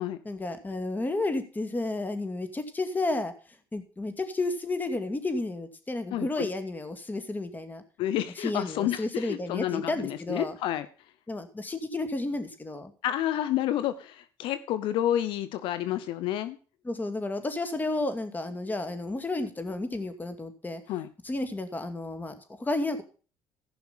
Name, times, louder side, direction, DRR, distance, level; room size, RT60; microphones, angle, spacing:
voice 1, 0.2-3.3 3.7-7.8 8.4-10.5 11.3-12.9 16.8-20.8 21.2-23.0, left 2 dB, 20° left, 9 dB, 2.3 m, -32 dB
voice 2, 6.1-6.5 8.0-10.9 13.0-16.6 20.9-21.1, left 12 dB, 75° left, 13 dB, 0.8 m, -29 dB
15.0 x 5.9 x 5.7 m, 0.38 s
supercardioid pair, 80°, 9 cm